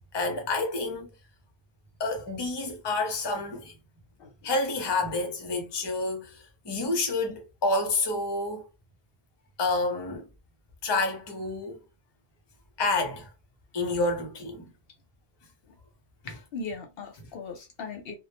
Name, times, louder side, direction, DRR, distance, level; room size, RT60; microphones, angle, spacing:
voice 1, 0.1-1.1 2.0-3.7 4.4-8.6 9.6-10.3 10.8-11.8 12.8-13.3 13.7-14.7, left 2 dB, 30° left, 0.5 m, -29 dB
voice 2, 16.3-18.1, left 4 dB, 65° left, 0.7 m, -38 dB
2.1 x 2.0 x 2.9 m
omnidirectional pair, 1.1 m